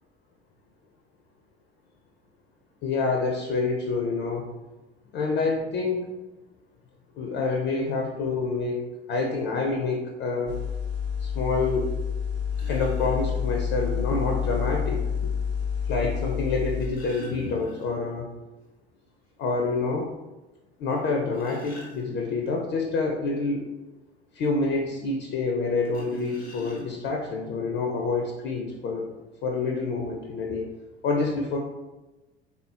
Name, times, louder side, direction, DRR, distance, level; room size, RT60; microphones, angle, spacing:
voice 1, 2.8-4.5 5.1-6.1 7.2-8.8 9.1-10.5 11.2-11.9 12.6-15.3 15.8-18.3 19.4-20.1 20.8-23.7 24.3-29.1 29.4-30.7 31.0-31.6, left 3 dB, 35° left, 1 dB, 0.4 m, -27 dB
sound 1, 10.5-16.9, left 7 dB, 35° right, 0.5 m, -28 dB
sound 2, 12.5-13.2 14.6-14.7 16.5-18.2 18.5-18.6 19.0-19.1 19.6-19.7 21.0-22.5 25.8-27.2 28.1-28.2 28.5-28.7, right 1 dB, 90° left, 0.8 m, -45 dB
3.6 x 2.1 x 2.4 m, 1.1 s
figure-of-eight pair, 60°, 31 cm